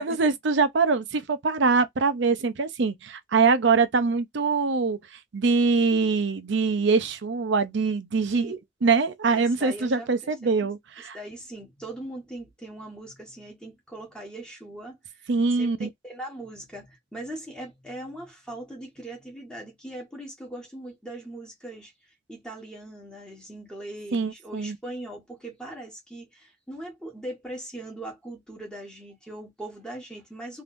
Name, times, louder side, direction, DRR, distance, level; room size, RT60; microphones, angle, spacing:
voice 1, 0.0-5.0 5.3-11.2 15.3-15.9 24.1-24.8, right 4 dB, 65° right, 0.6 m, -23 dB
voice 2, 9.3-10.3 11.0-15.3 15.6-21.9 22.3-30.6, right 1 dB, 5° left, 1.4 m, -40 dB
3.4 x 2.7 x 2.6 m
head